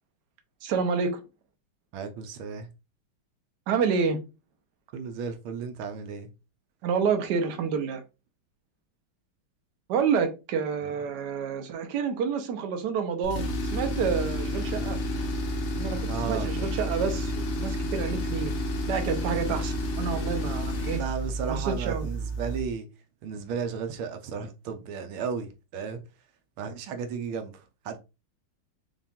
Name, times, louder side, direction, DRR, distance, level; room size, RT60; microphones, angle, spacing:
voice 1, 0.6-1.2 3.7-4.2 6.8-8.0 9.9-15.0 15.8-18.5 18.9-21.0 21.5-22.1, right 6 dB, 60° right, 1.3 m, -28 dB
voice 2, 1.9-2.7 4.9-6.3 16.1-16.5 20.9-22.9 23.2-26.0 26.6-28.0, right 6 dB, 80° right, 1.6 m, -34 dB
Tools, 13.2-22.7, equal, 55° left, 0.8 m, -30 dB
5.7 x 2.4 x 3.6 m
omnidirectional pair, 2.3 m